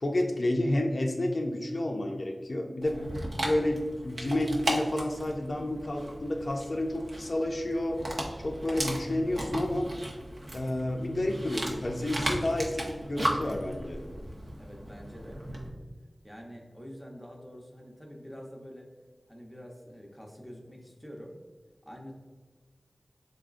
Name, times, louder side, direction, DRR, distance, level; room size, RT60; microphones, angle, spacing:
voice 1, 0.0-3.0 3.4-8.0 8.4-9.9 10.5-14.0, left 1 dB, 55° left, 2 dB, 0.4 m, -30 dB
Dog, 2.8-15.7, right 1 dB, 70° right, 0.7 m, -36 dB
voice 2, 14.6-15.4 16.2-18.9 19.3-21.3 21.9-22.1, equal, 5° right, 0 dB, 0.7 m, -46 dB
3.8 x 3.6 x 2.4 m, 1.4 s
wide cardioid pair, 75°, 0 cm